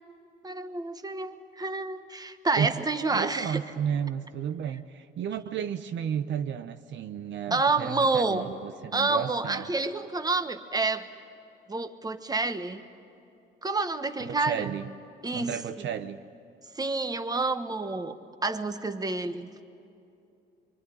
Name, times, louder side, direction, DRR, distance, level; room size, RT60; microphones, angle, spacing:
voice 1, 0.4-3.6 7.5-8.4 8.9-11.1 11.7-12.8 13.6-14.7 15.2-15.5 16.7-19.5, right 3 dB, 20° right, 9 dB, 1.4 m, -28 dB
voice 2, 3.1-9.6 14.2-14.9 15.3-16.2, right 8 dB, 70° right, 9 dB, 0.9 m, -33 dB
24.5 x 24.0 x 10.0 m, 2.7 s
cardioid pair, 90°, 20 cm